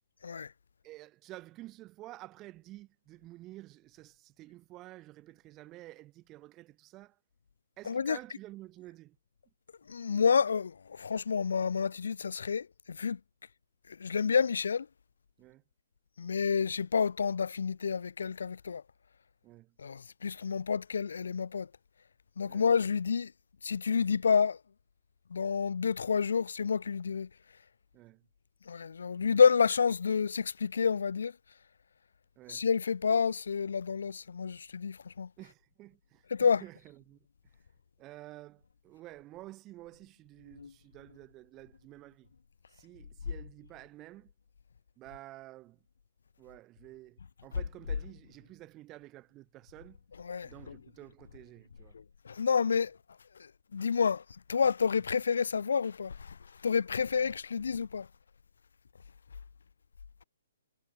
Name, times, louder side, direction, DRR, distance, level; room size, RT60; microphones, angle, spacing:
voice 1, 0.8-7.2 7.8-9.2 15.4-15.6 19.4-19.7 22.5-22.7 27.9-28.2 32.4-32.7 35.4-37.2 38.0-42.3 42.7-44.3 45.0-45.8 46.4-50.0 50.4-52.0, right 17 dB, 15° right, 2.6 m, -51 dB
voice 2, 7.8-8.2 9.9-13.2 13.9-14.9 16.2-18.8 19.8-21.7 22.4-23.3 23.6-24.6 25.3-27.3 28.7-31.3 32.5-35.3 36.3-36.6 40.6-40.7 50.2-50.8 51.9-53.0 53.4-54.2 54.5-56.4 56.6-58.1, left 6 dB, 80° left, 1.6 m, -29 dB
hypercardioid pair, 175°, 0 cm